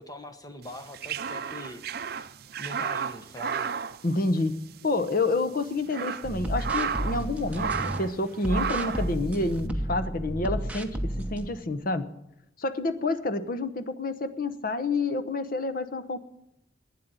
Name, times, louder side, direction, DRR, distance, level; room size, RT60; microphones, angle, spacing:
voice 1, 0.0-2.1 2.6-3.7, left 1 dB, 20° left, 7 dB, 1.1 m, -42 dB
sound 1, 0.7-4.8 5.0-5.2 5.7-7.3 7.5-8.1 8.5-9.1, right 6 dB, 55° right, 0.5 m, -32 dB
voice 2, 4.0-4.5 4.8-12.1 12.6-16.2, left 2 dB, 50° left, 11 dB, 0.9 m, -28 dB
sound 2, 6.2-8.0 8.4-11.5, right 1 dB, 5° right, 1.0 m, -32 dB
12.0 x 9.4 x 9.0 m, 0.81 s
head